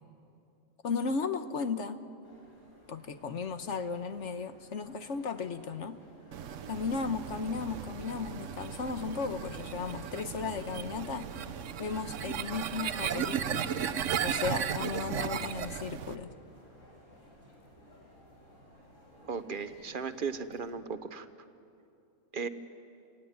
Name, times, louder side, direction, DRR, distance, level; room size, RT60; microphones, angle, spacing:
voice 1, 0.8-2.0 2.9-6.0 6.7-11.3 11.8-13.6 14.2-16.3, left 5 dB, 70° left, 9 dB, 1.4 m, -35 dB
sound 1, 2.2-20.7, equal, 85° left, 5.7 m, -57 dB
sound 2, 6.3-16.2, right 8 dB, 75° right, 1.1 m, -35 dB
voice 2, 19.3-21.3 22.3-22.5, right 5 dB, 45° right, 11 dB, 1.1 m, -36 dB
29.5 x 16.5 x 9.5 m, 2.7 s
omnidirectional pair, 1.3 m